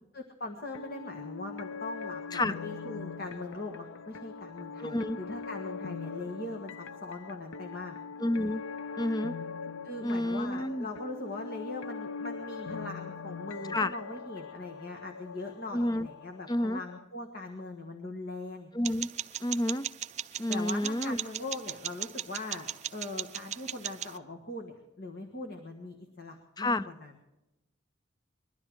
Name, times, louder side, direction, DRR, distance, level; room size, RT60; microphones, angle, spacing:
voice 1, 0.1-7.9 9.8-18.7 20.5-27.1, left 2 dB, 55° left, 2 dB, 1.5 m, -41 dB
sound 1, 0.6-17.0, left 5 dB, 85° left, 0.6 m, -42 dB
voice 2, 4.8-5.2 8.2-8.6 9.0-9.4 10.0-10.9 13.7-13.9 15.7-16.1 16.5-16.8 18.7-19.1 19.4-19.8 20.4-21.2 26.6-26.8, left 1 dB, 20° left, 15 dB, 0.5 m, -29 dB
sound 2, 18.8-24.2, right 11 dB, 35° right, 0.5 m, -38 dB
21.5 x 12.5 x 4.7 m, 0.94 s
head